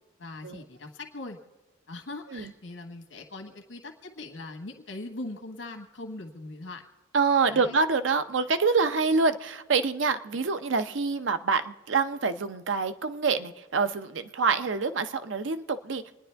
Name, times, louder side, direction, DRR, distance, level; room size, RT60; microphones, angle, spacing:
voice 1, 0.2-1.4 1.9-6.8 7.5-7.8, left 2 dB, 90° left, 4 dB, 1.6 m, -41 dB
voice 2, 7.1-16.0, right 4 dB, 85° right, 11 dB, 0.7 m, -26 dB
28.0 x 10.5 x 3.4 m, 1.1 s
head